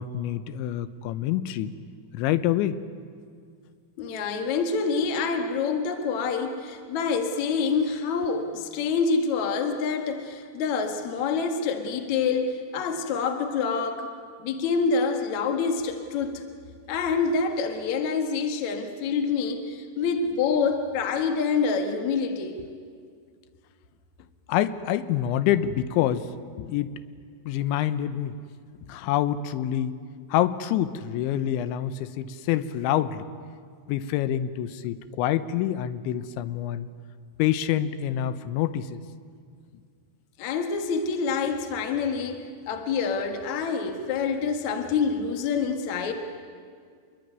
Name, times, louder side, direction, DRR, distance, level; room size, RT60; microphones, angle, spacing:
voice 1, 0.0-1.7 2.1-2.8 24.5-26.3 26.6-26.9 27.5-28.3 28.9-30.0 30.3-33.3 33.9-36.9 37.4-39.0, left 11 dB, 75° left, 13 dB, 3.1 m, -26 dB
voice 2, 4.0-14.1 14.4-16.4 16.9-22.6 40.4-46.1, left 5 dB, 60° left, 6 dB, 2.0 m, -27 dB
27.0 x 22.0 x 9.4 m, 2.1 s
omnidirectional pair, 5.7 m